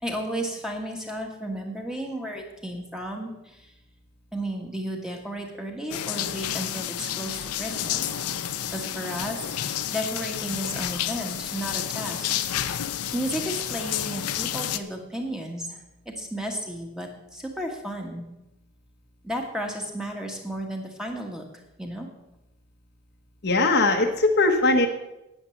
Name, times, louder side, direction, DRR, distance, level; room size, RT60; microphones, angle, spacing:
voice 1, 0.0-3.7 4.3-8.2 8.7-12.3 13.1-18.2 19.2-21.4 21.8-22.1, equal, 5° right, 1 dB, 1.5 m, -33 dB
sound 1, 5.9-14.8, left 10 dB, 90° left, 0.7 m, -30 dB
voice 2, 23.4-24.9, left 2 dB, 50° left, 3 dB, 1.0 m, -20 dB
9.8 x 9.1 x 7.2 m, 0.95 s
head